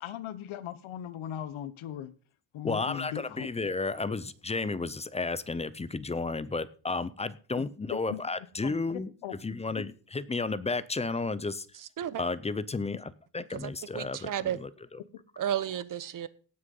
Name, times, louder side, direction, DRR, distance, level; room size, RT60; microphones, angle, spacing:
voice 1, 0.0-2.1 2.5-3.5 7.6-7.7 7.9-8.2 9.2-9.3 9.7-9.8, left 10 dB, 70° left, 13 dB, 1.2 m, -38 dB
voice 2, 2.6-9.1 9.4-11.7 12.2-15.0, left 3 dB, 15° left, 16 dB, 0.5 m, -33 dB
voice 3, 13.5-14.6 15.4-16.3, right 10 dB, 40° right, 16 dB, 0.8 m, -33 dB
17.5 x 6.4 x 5.4 m, 0.41 s
cardioid pair, 145°, 49 cm